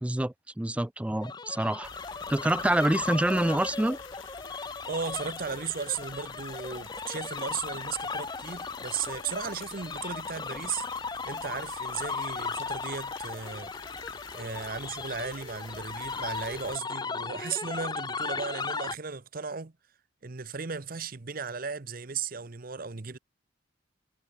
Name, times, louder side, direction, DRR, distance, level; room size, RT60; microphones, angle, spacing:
voice 1, 0.0-1.9 2.3-4.0, right 1 dB, 5° right, 0.3 m, -27 dB
sound 1, 1.2-18.9, left 4 dB, 20° left, 0.7 m, -37 dB
sound 2, 1.8-16.8, left 6 dB, 80° left, 4.0 m, -49 dB
voice 2, 4.9-10.8 11.2-13.7 14.3-19.7 20.2-23.2, right 6 dB, 45° right, 0.9 m, -36 dB
Mechanisms, 12.5-13.4 13.7-17.3, right 4 dB, 70° right, 5.9 m, -59 dB
head